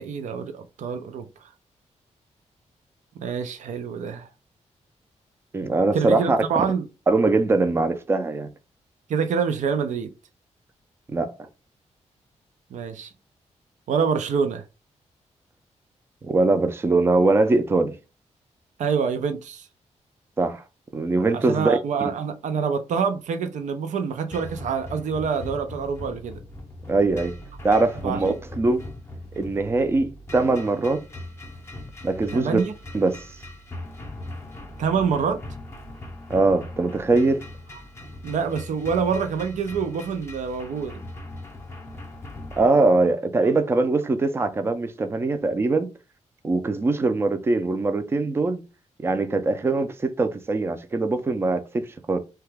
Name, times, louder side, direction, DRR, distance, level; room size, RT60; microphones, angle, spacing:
voice 1, 0.0-1.5 3.2-4.3 5.9-6.9 9.1-10.1 12.7-13.1 13.9-14.6 18.8-19.7 21.3-26.4 28.0-28.4 32.3-32.7 34.8-35.4 38.2-41.0, right 6 dB, 85° right, 0.5 m, -26 dB
voice 2, 5.5-6.6 7.1-8.5 11.1-11.3 16.2-17.9 20.4-20.6 20.9-21.8 26.9-27.3 27.6-28.8 29.4-31.0 32.0-32.6 32.9-33.2 36.3-37.4 42.6-45.9 46.4-48.6 49.0-52.2, right 3 dB, 20° right, 0.4 m, -22 dB
sound 1, 24.3-42.7, left 1 dB, 20° left, 0.6 m, -40 dB
2.8 x 2.3 x 3.3 m
wide cardioid pair, 160°, 12 cm